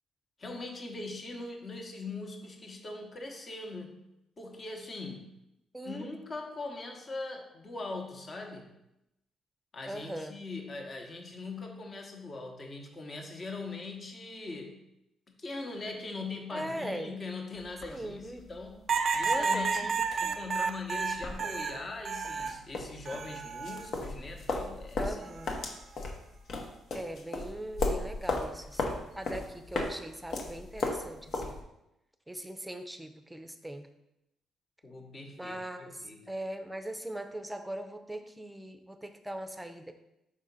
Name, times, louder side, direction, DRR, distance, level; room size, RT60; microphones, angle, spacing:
voice 1, 0.4-4.0 4.4-5.3 5.8-8.7 9.7-14.8 15.4-18.8 19.1-25.2 34.8-36.3, left 3 dB, 35° left, 2 dB, 1.1 m, -41 dB
voice 2, 9.8-10.4 16.5-17.1 17.9-18.4 19.3-19.9 20.2-20.4 25.0-25.5 26.9-31.5 32.3-33.9 35.4-39.9, right 1 dB, 5° right, 8 dB, 0.6 m, -40 dB
sound 1, 17.6-31.6, left 3 dB, 65° left, 1.0 m, -37 dB
sound 2, 18.9-22.6 23.1-23.9 25.2-25.6, right 5 dB, 50° right, 0.4 m, -31 dB
4.9 x 3.6 x 5.3 m, 0.86 s
cardioid pair, 90°, 0 cm